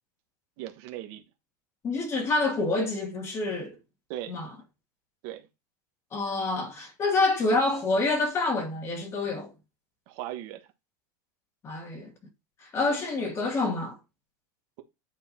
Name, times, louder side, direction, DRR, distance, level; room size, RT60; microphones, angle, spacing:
voice 1, 0.6-1.2 4.1-4.4 5.2-5.5 10.1-10.7, right 13 dB, 55° right, 1.3 m, -38 dB
voice 2, 1.8-3.8 4.3-4.5 6.1-9.5 11.6-12.1 12.7-14.0, left 3 dB, 25° left, 2.3 m, -27 dB
9.5 x 3.7 x 4.4 m
supercardioid pair, 150°, 11 cm